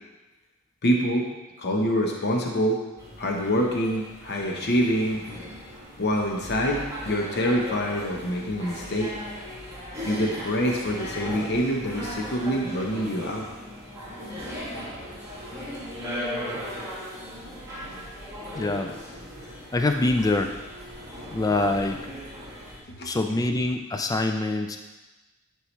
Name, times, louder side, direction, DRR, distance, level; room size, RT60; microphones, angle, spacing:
voice 1, 0.8-1.3 1.6-2.8 3.2-5.2 6.0-9.1 10.0-13.5 16.5-16.7 19.5-19.6 23.0-23.1, equal, 50° left, 0 dB, 0.9 m, -26 dB
sound 1, 3.0-22.8, equal, 15° right, 2.5 m, -38 dB
voice 2, 18.5-18.9 19.7-20.5 21.3-22.0 23.0-24.8, left 2 dB, 15° left, 5 dB, 0.3 m, -25 dB
9.7 x 4.7 x 3.2 m, 1.1 s
head